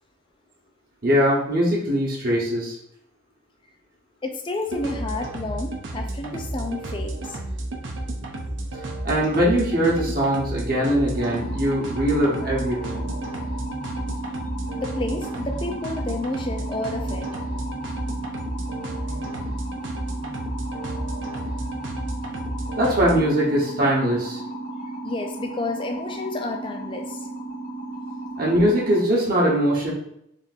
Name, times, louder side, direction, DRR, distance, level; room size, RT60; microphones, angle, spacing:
voice 1, 1.0-2.8 9.0-13.1 22.8-24.4 28.4-29.9, equal, 45° right, -4 dB, 1.0 m, -21 dB
voice 2, 4.2-7.4 14.7-17.3 25.0-27.3, left 2 dB, 25° left, 3 dB, 0.4 m, -30 dB
sound 1, 4.7-23.2, right 1 dB, 65° right, 0.7 m, -32 dB
sound 2, 11.1-29.0, right 2 dB, 50° left, 1.2 m, -35 dB
3.5 x 2.6 x 4.1 m, 0.76 s
head